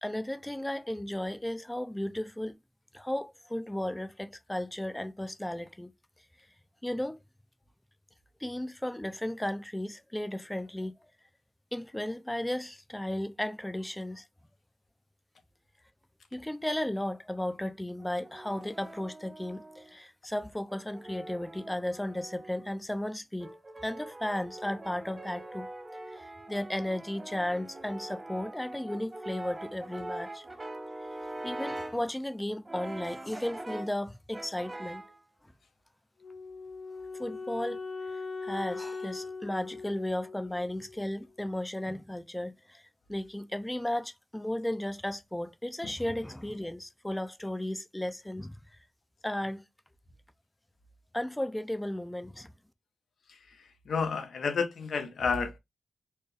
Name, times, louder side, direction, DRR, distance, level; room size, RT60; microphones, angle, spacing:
voice 1, 0.0-2.6 2.9-5.9 6.8-7.2 8.4-11.1 11.7-14.3 16.3-25.7 26.1-30.5 31.1-35.0 37.2-37.8 38.1-48.8 49.2-49.6 51.1-52.5, left 1 dB, 10° left, 0.5 m, -35 dB
Brass instrument, 18.0-19.9 20.7-22.7 23.4-32.1 32.7-34.0 34.3-35.2, right 1 dB, 25° right, 0.8 m, -43 dB
Wind instrument woodwind instrument, 36.2-41.3, left 4 dB, 45° left, 0.9 m, -40 dB
voice 2, 53.9-55.6, left 5 dB, 80° left, 0.9 m, -30 dB
4.3 x 2.2 x 3.3 m
wide cardioid pair, 95°, 0 cm